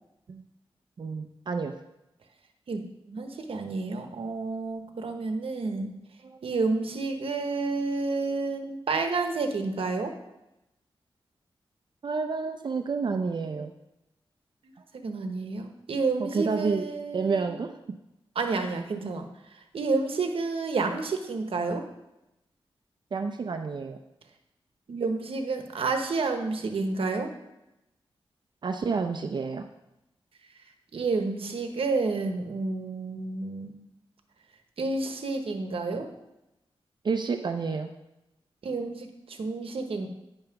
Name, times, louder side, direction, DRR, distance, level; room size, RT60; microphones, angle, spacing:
voice 1, 1.0-1.7 6.2-6.4 12.0-13.7 16.2-18.0 23.1-24.0 28.6-29.7 37.0-37.9, right 4 dB, 50° right, 6 dB, 0.6 m, -30 dB
voice 2, 3.1-5.9 6.4-10.1 14.9-17.5 18.3-19.3 19.7-21.8 24.9-27.3 30.9-33.7 34.8-36.1 38.6-40.1, right 3 dB, 75° right, 5 dB, 1.1 m, -30 dB
9.9 x 5.6 x 5.8 m, 0.90 s
wide cardioid pair, 130°, 10 cm